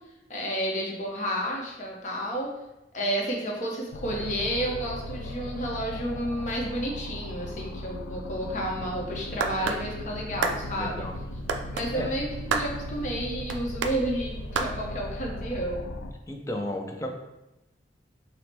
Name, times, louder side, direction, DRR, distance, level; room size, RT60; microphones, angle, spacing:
voice 1, 0.3-2.5 2.9-11.1 11.7-15.8, right 1 dB, 40° left, -1 dB, 0.8 m, -31 dB
sound 1, 3.9-16.1, left 1 dB, 85° left, 0.3 m, -37 dB
sound 2, 9.4-9.8 10.4-10.6 11.5-11.9 12.5-12.7 13.5-13.9 14.5-14.7, right 4 dB, 85° right, 0.3 m, -27 dB
voice 2, 10.7-11.1 11.9-12.1 16.3-17.1, left 1 dB, 15° left, 2 dB, 0.4 m, -33 dB
5.5 x 2.1 x 3.3 m, 0.95 s
head